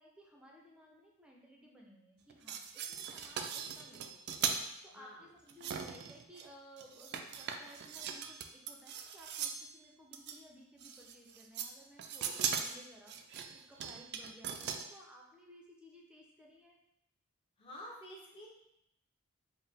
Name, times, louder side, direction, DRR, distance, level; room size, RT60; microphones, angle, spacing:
voice 1, 0.0-16.8, equal, 5° right, -2 dB, 0.5 m, -58 dB
sound 1, 2.3-4.6 5.5-6.5 6.8-9.7 10.1-10.4 10.8-11.7 12.0-14.8, right 7 dB, 50° right, 0.3 m, -39 dB
voice 2, 4.9-5.3 17.6-18.5, equal, 25° left, -4 dB, 0.8 m, -50 dB
4.5 x 2.1 x 3.5 m, 0.79 s
head